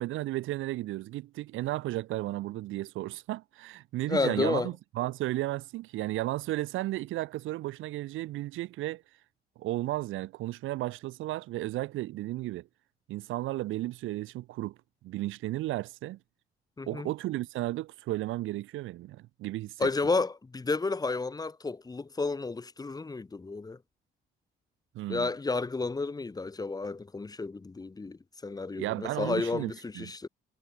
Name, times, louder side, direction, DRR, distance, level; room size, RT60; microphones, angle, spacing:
voice 1, 0.0-9.0 9.6-12.7 13.1-14.7 15.0-16.2 16.9-19.9 24.9-25.3 28.8-30.1, right 16 dB, 90° right, 1.2 m, -34 dB
voice 2, 4.1-4.7 16.8-17.1 19.8-23.8 25.1-30.3, left 3 dB, 20° left, 0.9 m, -31 dB
cardioid pair, 90°, 20 cm